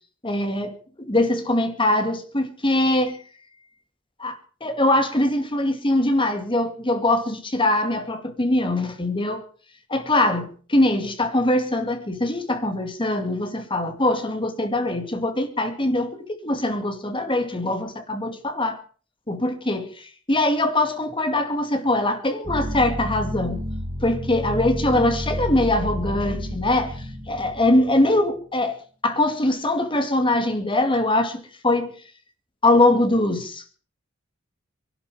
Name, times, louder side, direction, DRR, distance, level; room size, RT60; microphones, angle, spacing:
voice 1, 0.2-3.2 4.2-9.4 9.9-18.8 19.3-23.7 24.0-31.9 32.6-33.7, left 1 dB, 25° left, 2.3 m, -22 dB
sound 1, 22.4-28.2, equal, 25° right, 2.4 m, -30 dB
23.0 x 12.0 x 4.9 m
head